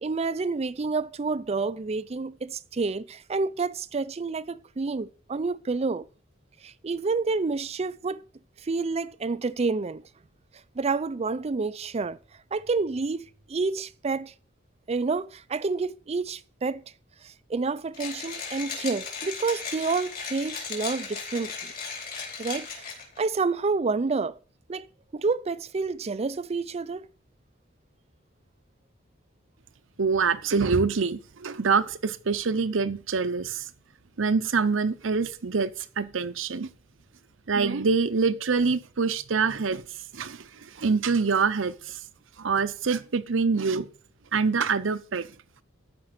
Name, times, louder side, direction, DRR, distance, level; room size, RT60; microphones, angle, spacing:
voice 1, 0.0-6.0 6.6-8.2 8.6-10.0 10.8-12.2 12.5-14.3 14.9-16.8 17.2-21.7 22.4-22.9 23.2-24.4 24.7-24.9 25.1-27.1, right 4 dB, 30° right, 0.4 m, -29 dB
Mechanisms, 17.9-23.2, left 5 dB, 45° left, 4.4 m, -36 dB
voice 2, 30.0-33.7 34.2-36.7 37.5-39.8 40.1-42.0 42.4-43.9 44.3-45.3, right 5 dB, 70° right, 0.7 m, -25 dB
14.0 x 5.3 x 6.5 m
head